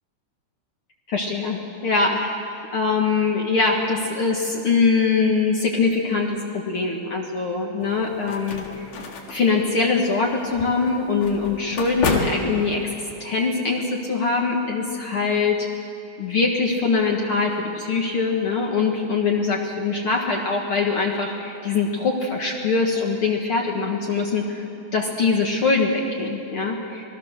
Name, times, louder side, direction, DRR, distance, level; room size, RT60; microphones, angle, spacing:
voice 1, 1.1-2.4 2.7-8.9 9.3-12.8 13.2-15.6 16.2-24.7 24.9-27.0, left 4 dB, 50° left, -1 dB, 2.3 m, -23 dB
sound 1, 7.8-13.1, left 3 dB, 85° left, 3.6 m, -31 dB
28.0 x 20.5 x 6.7 m, 2.7 s
omnidirectional pair, 3.6 m